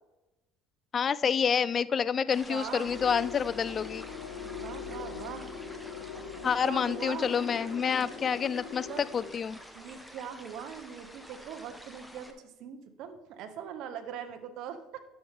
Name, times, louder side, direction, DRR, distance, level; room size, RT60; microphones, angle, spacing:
voice 1, 0.9-4.0 6.4-9.6, left 7 dB, 35° left, 18 dB, 0.3 m, -28 dB
voice 2, 2.2-2.9 4.4-5.6 6.4-7.3 8.0-8.3 8.9-9.0 9.7-15.0, right 8 dB, 65° right, 7 dB, 1.0 m, -42 dB
sound 1, 2.3-12.3, equal, ahead, 1.0 m, -49 dB
sound 2, 2.8-9.3, left 6 dB, 85° left, 1.5 m, -41 dB
sound 3, 5.2-9.6, right 3 dB, 40° right, 2.9 m, -59 dB
11.5 x 6.2 x 3.6 m, 0.99 s
cardioid pair, 120°, 0 cm